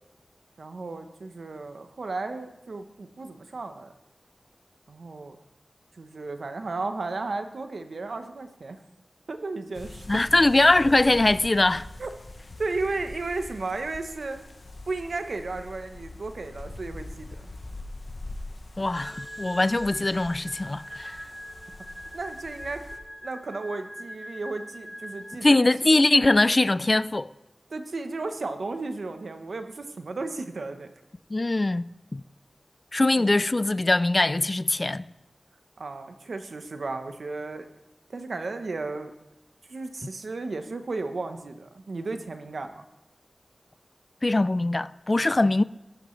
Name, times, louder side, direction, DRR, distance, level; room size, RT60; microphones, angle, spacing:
voice 1, 0.6-3.9 4.9-5.4 6.0-8.8 9.3-10.2 12.0-12.1 12.6-14.4 14.9-17.5 22.1-22.8 23.2-25.7 27.7-30.9 33.2-33.3 35.8-37.7 38.1-39.1 39.7-42.8, right 3 dB, 85° right, 1.0 m, -34 dB
sound 1, 9.7-23.0, left 2 dB, 55° left, 0.9 m, -43 dB
voice 2, 10.1-11.9 18.8-21.2 25.4-27.3 31.3-31.8 32.1-32.2 32.9-35.0 44.2-45.6, left 2 dB, 35° left, 0.3 m, -22 dB
sound 2, 18.9-25.4, equal, 5° left, 1.1 m, -42 dB
14.0 x 12.0 x 3.2 m
wide cardioid pair, 85°, 0 cm